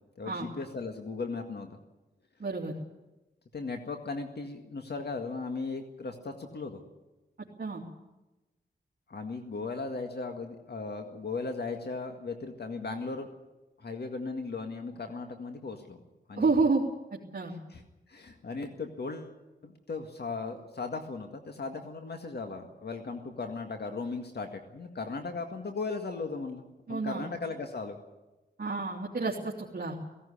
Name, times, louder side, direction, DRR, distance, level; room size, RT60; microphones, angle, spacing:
voice 1, 0.2-1.8 3.5-6.8 9.1-13.3 13.8-16.0 16.3-16.6 17.7-17.8 18.1-19.3 19.6-28.0, left 4 dB, 60° left, 4 dB, 1.9 m, -37 dB
voice 2, 2.4-2.7 7.6-7.8 16.4-16.8 17.1-17.5 26.9-27.3 28.6-29.9, right 4 dB, 50° right, -3 dB, 3.0 m, -29 dB
17.0 x 17.0 x 10.0 m, 1.1 s
wide cardioid pair, 100°, 19 cm